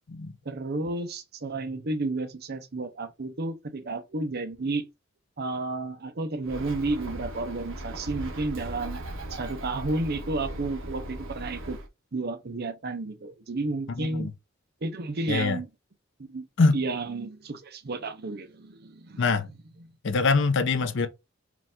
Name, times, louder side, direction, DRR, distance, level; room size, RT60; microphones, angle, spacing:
voice 1, 0.5-4.9 5.4-9.0 9.3-11.8 12.1-14.3 14.8-15.7 16.3-16.5 16.7-19.3, right 2 dB, 50° right, 0.7 m, -32 dB
Bird, 6.4-11.9, right 1 dB, 70° right, 1.0 m, -38 dB
voice 2, 14.0-14.3 15.3-15.6 16.6-16.8 19.2-19.5 20.0-21.1, left 4 dB, 65° left, 0.6 m, -23 dB
4.6 x 2.5 x 3.6 m
head